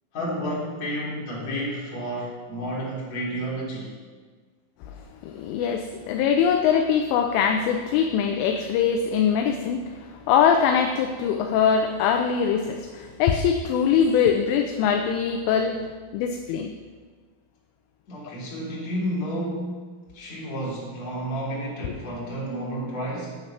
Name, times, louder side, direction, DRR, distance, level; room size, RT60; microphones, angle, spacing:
voice 1, 0.1-3.9 18.1-19.8 20.1-23.4, equal, 35° left, -6 dB, 4.5 m, -31 dB
voice 2, 5.2-16.7 18.2-18.3, left 7 dB, 80° left, 5 dB, 3.1 m, -22 dB
11.0 x 9.6 x 5.9 m, 1.5 s
omnidirectional pair, 5.9 m